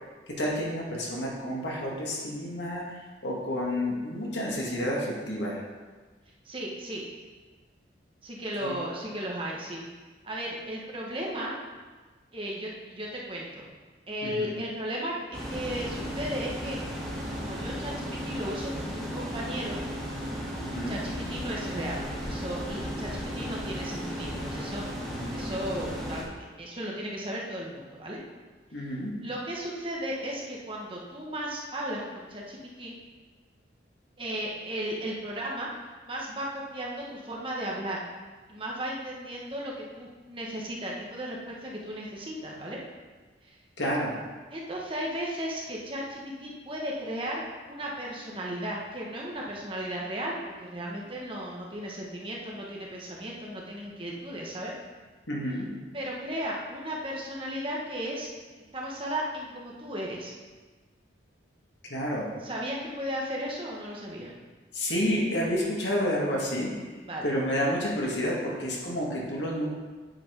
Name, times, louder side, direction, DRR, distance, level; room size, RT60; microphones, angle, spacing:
voice 1, 0.4-2.8 3.2-5.6 8.6-8.7 14.2-14.3 20.6-21.0 25.1-25.4 28.7-29.1 43.8-44.1 55.3-55.7 61.8-62.3 64.7-66.7 67.2-69.7, equal, 75° left, -3 dB, 2.0 m, -29 dB
voice 2, 6.4-7.0 8.2-9.8 10.2-11.5 12.3-13.7 14.1-16.8 17.3-19.8 20.9-24.8 25.3-28.2 28.8-28.9 29.2-32.9 34.2-35.7 36.1-38.0 38.5-42.8 43.4-43.6 44.5-54.7 55.9-58.3 58.7-60.3 62.4-64.3 67.1-67.3, equal, 30° right, -3 dB, 1.3 m, -35 dB
sound 1, 15.3-26.2, equal, 5° left, 1.5 m, -35 dB
8.5 x 5.2 x 5.2 m, 1.3 s
head